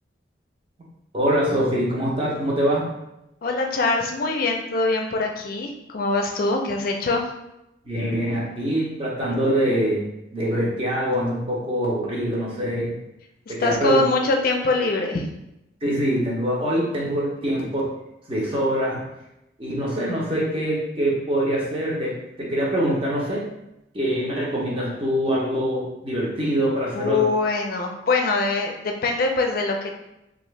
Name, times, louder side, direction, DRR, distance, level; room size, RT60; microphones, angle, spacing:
voice 1, 1.1-2.9 7.8-12.9 13.5-14.0 15.8-17.9 18.3-19.0 19.6-23.4 23.9-27.2, equal, 30° right, -4 dB, 0.8 m, -24 dB
voice 2, 3.4-7.3 13.6-15.3 26.9-29.9, left 3 dB, 50° left, 2 dB, 0.4 m, -23 dB
2.7 x 2.5 x 3.2 m, 0.89 s
head